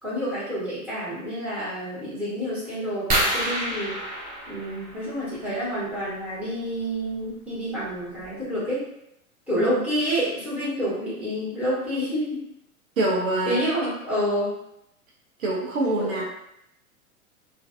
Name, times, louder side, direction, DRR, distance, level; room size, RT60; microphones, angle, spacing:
voice 1, 0.0-4.0 4.5-8.9 9.5-12.4 13.4-14.5 16.0-16.2, equal, 5° right, -10 dB, 1.2 m, -28 dB
sound 1, 3.1-5.5 7.1-7.3 7.8-7.9 8.2-8.4, right 1 dB, 20° right, 0.6 m, -28 dB
voice 2, 13.0-13.6 15.4-16.2, right 2 dB, 65° right, -4 dB, 0.9 m, -24 dB
2.5 x 2.3 x 2.4 m, 0.79 s
figure-of-eight pair, 100°, 43 cm